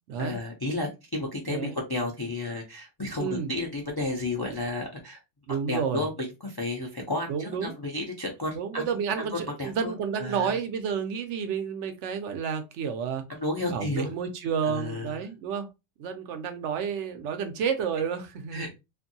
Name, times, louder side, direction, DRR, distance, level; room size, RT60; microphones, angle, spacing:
voice 1, 0.2-5.2 5.7-8.8 9.2-10.6 13.3-14.1 14.6-15.2 18.5-18.8, left 2 dB, 40° left, 0.3 m, -32 dB
voice 2, 1.5-1.8 3.2-3.5 5.5-6.1 7.3-7.7 8.5-13.2 13.7-15.7 16.0-18.7, right 6 dB, 75° right, 0.9 m, -30 dB
2.6 x 2.5 x 2.6 m
omnidirectional pair, 1.2 m